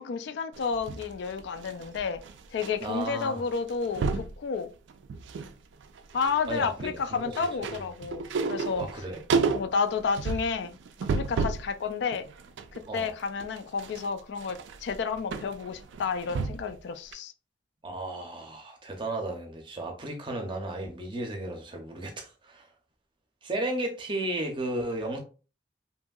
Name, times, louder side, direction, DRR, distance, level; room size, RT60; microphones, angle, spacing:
voice 1, 0.0-2.2 2.5-4.7 6.1-8.8 9.5-10.8 11.0-12.3 12.7-17.3, left 5 dB, 70° left, 0.3 m, -31 dB
sound 1, 0.6-2.7 3.0-3.2 3.5-4.3 4.9-5.5 5.8-11.7 12.1-16.8 17.1-17.2, right 4 dB, 80° right, 0.3 m, -32 dB
voice 2, 2.8-3.4 6.5-7.3 7.6-7.8 8.8-9.2 12.9-13.1 17.8-22.7 23.4-25.2, right 1 dB, 25° right, 0.6 m, -34 dB
2.8 x 2.6 x 2.3 m
head